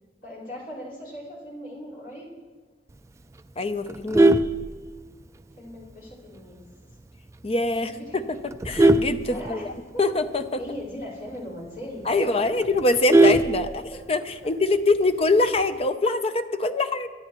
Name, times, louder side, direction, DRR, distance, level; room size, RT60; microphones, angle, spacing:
voice 1, 0.2-2.4 5.6-6.6 7.9-8.5 9.3-10.1 10.6-12.8 16.8-16.9, left 1 dB, 55° left, -7 dB, 4.9 m, -39 dB
voice 2, 3.6-4.3 7.4-8.2 8.7-9.7 10.0-10.4 12.1-13.7 14.1-17.1, left 2 dB, 35° left, 9 dB, 0.6 m, -24 dB
Vehicle horn car horn honking, 3.9-5.4 5.8-6.1 6.4-6.5 6.9-7.0 7.3-7.7 8.2-10.0 10.4-10.5 10.8-10.9 11.3-11.4 11.8-11.9 12.1-14.2 15.3-15.8, right 2 dB, 15° right, 0.4 m, -20 dB
23.5 x 10.0 x 3.1 m, 1.4 s
head